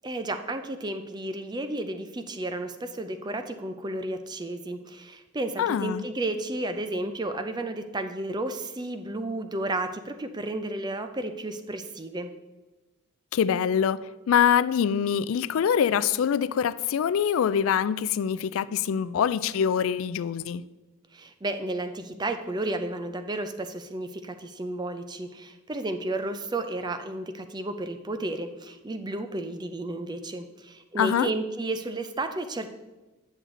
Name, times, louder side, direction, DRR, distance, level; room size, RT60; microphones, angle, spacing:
voice 1, 0.0-12.3 21.1-32.7, right 2 dB, 20° right, 0.5 m, -32 dB
voice 2, 5.6-6.0 13.3-20.6 31.0-31.3, left 8 dB, 70° left, 0.3 m, -24 dB
9.4 x 6.4 x 3.8 m
head